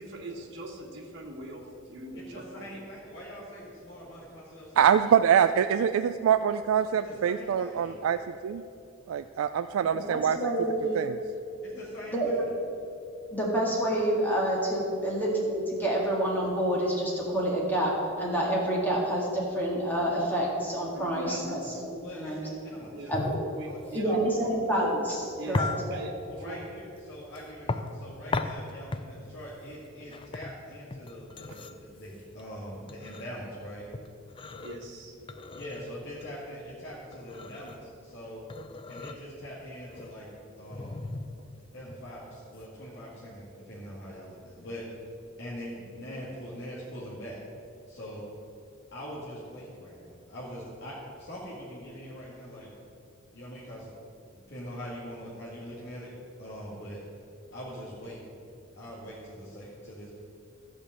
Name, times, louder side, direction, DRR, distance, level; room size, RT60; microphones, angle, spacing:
voice 1, 0.0-2.8 20.9-21.8 22.9-23.1 23.5-24.2 25.4-26.1 26.4-26.6 34.6-35.1, right 1 dB, 55° right, -3 dB, 1.5 m, -42 dB
voice 2, 2.3-5.0 7.0-8.0 11.6-12.5 22.0-23.1 23.6-23.8 26.3-33.8 35.5-38.4 38.9-40.3 40.6-41.0 41.7-44.9 45.4-47.4 47.9-48.2 48.9-52.7 53.3-53.9 54.2-56.1 56.4-57.0 57.5-58.2 58.8-60.1, equal, 55° left, -7 dB, 1.9 m, -42 dB
voice 3, 4.8-8.6 9.1-10.4 10.9-11.2, right 8 dB, 90° right, 10 dB, 0.3 m, -24 dB
voice 4, 10.1-11.0 12.1-12.4 13.3-17.9 18.2-22.5 23.1-23.2 23.9-26.0, right 1 dB, 10° left, -4 dB, 1.8 m, -28 dB
sound 1, 23.1-42.7, left 3 dB, 25° left, 0.4 m, -37 dB
13.5 x 5.1 x 7.5 m, 2.7 s
head